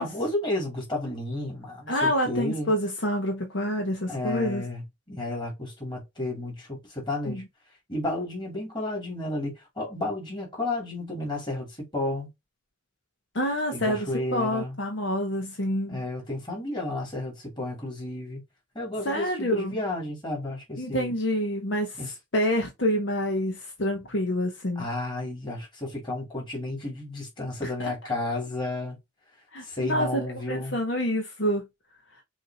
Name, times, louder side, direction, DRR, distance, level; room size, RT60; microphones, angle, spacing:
voice 1, 0.0-2.7 4.1-7.4 7.9-12.3 13.7-14.8 15.9-18.4 18.7-21.1 22.0-22.1 24.8-29.0 29.6-30.8, left 2 dB, 25° left, 2.7 m, -32 dB
voice 2, 1.9-4.6 7.3-7.4 13.3-16.0 19.0-19.7 20.8-22.0 22.3-24.8 27.6-27.7 29.5-31.6, equal, 60° left, 1.1 m, -27 dB
6.2 x 2.9 x 2.8 m
head